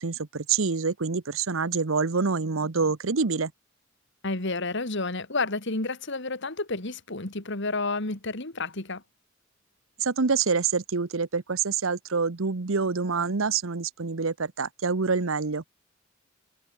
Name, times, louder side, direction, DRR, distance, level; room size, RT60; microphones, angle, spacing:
voice 1, 0.0-3.5 10.0-15.7, right 5 dB, 85° right, 0.9 m, -26 dB
voice 2, 4.2-9.0, left 3 dB, 60° left, 2.8 m, -30 dB
head